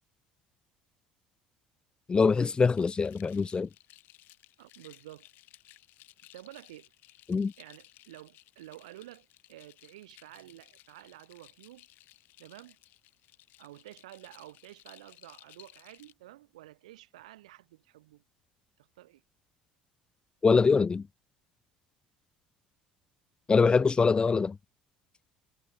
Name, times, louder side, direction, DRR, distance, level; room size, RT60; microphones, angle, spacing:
voice 1, 2.1-3.7 7.3-7.5 20.4-21.1 23.5-24.6, left 5 dB, 25° left, 1.1 m, -23 dB
sound 1, 2.7-16.1, left 17 dB, 50° left, 5.9 m, -58 dB
voice 2, 4.6-5.3 6.3-6.9 7.3-11.9 12.4-12.8 13.6-18.2 19.0-19.2, right 16 dB, 70° right, 5.7 m, -51 dB
figure-of-eight pair, 60°, 4 cm